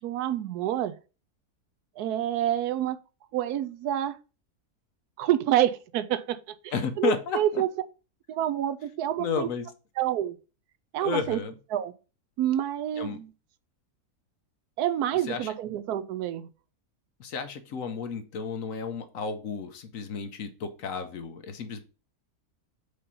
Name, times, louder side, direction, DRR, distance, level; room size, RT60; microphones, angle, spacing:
voice 1, 0.0-1.0 2.0-3.0 3.3-4.2 5.2-6.4 6.6-7.7 8.3-9.5 10.0-10.4 10.9-11.4 11.7-11.9 12.4-13.3 14.8-16.5, right 11 dB, 80° right, 1.1 m, -27 dB
voice 2, 6.7-7.6 9.2-9.7 11.0-11.5 13.0-13.2 15.3-15.5 17.2-21.8, left 6 dB, 65° left, 1.1 m, -32 dB
5.1 x 4.3 x 5.4 m
omnidirectional pair, 1.6 m